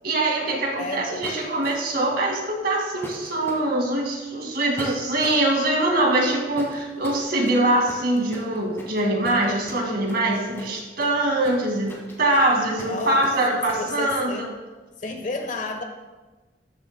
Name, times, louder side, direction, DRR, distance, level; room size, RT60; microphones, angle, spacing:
voice 1, 0.0-14.5, right 1 dB, 55° right, 0 dB, 2.2 m, -23 dB
voice 2, 0.7-1.2 12.8-13.3 13.8-14.5 15.0-15.8, left 2 dB, 45° left, 5 dB, 1.1 m, -31 dB
sound 1, 1.2-2.0 3.0-3.6 4.8-5.5 6.5-14.3, equal, 15° left, 1.9 m, -40 dB
13.0 x 11.0 x 2.2 m, 1.2 s
head